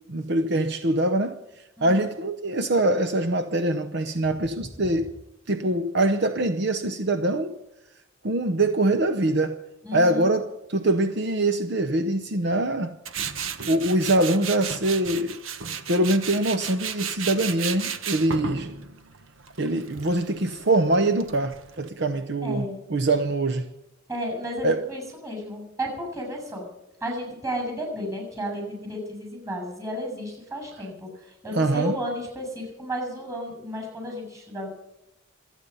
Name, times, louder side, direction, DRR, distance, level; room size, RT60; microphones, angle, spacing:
voice 1, 0.1-1.4 1.8-5.1 5.5-7.5 8.2-9.6 9.9-13.0 13.7-15.4 15.9-18.7 19.6-23.7 24.6-24.9 31.5-32.0, right 1 dB, 55° right, 0.8 m, -24 dB
voice 2, 9.8-10.3 22.4-22.8 24.1-26.7 27.0-34.7, equal, 15° right, 7.0 m, -33 dB
Tools, 13.0-21.9, right 6 dB, 75° right, 1.3 m, -34 dB
26.5 x 9.3 x 5.5 m
head